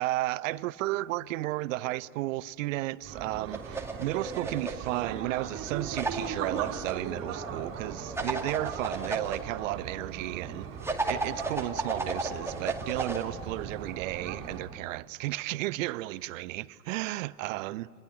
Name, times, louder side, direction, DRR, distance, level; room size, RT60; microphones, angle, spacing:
voice 1, 0.0-10.7 11.0-17.9, right 17 dB, 55° right, 0.7 m, -33 dB
sound 1, 3.0-14.8, right 6 dB, 30° right, 3.9 m, -39 dB
sound 2, 3.5-4.9 6.0-6.9 8.1-9.4 10.8-13.2, right 3 dB, 5° right, 2.5 m, -33 dB
28.0 x 21.0 x 9.9 m
figure-of-eight pair, 90°, 47 cm